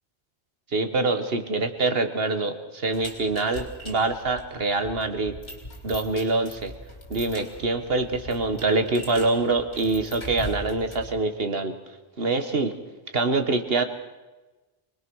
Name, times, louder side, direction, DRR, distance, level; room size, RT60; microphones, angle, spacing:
voice 1, 0.7-5.4 5.8-6.7 7.1-11.8 12.2-12.7 13.1-13.8, right 3 dB, 65° right, 8 dB, 1.6 m, -25 dB
sound 1, 2.9-11.2, left 1 dB, 70° left, 4.2 m, -41 dB
23.5 x 20.5 x 6.3 m, 1.2 s
omnidirectional pair, 1.1 m